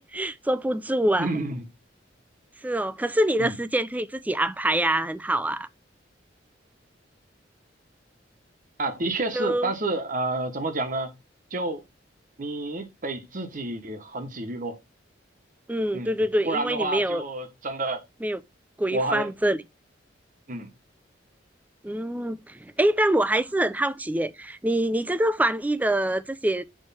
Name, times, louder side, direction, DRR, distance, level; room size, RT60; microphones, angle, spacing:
voice 1, 0.0-1.3 2.6-5.7 9.3-9.7 15.7-17.2 18.2-18.4 18.8-19.6 21.8-26.6, right 1 dB, 10° right, 0.4 m, -25 dB
voice 2, 1.2-1.6 3.4-3.6 8.8-11.1 11.5-11.8 12.4-14.8 15.9-16.1 16.4-18.0 18.9-19.3 20.5-20.7, right 2 dB, 45° right, 1.1 m, -29 dB
6.2 x 3.1 x 5.5 m
head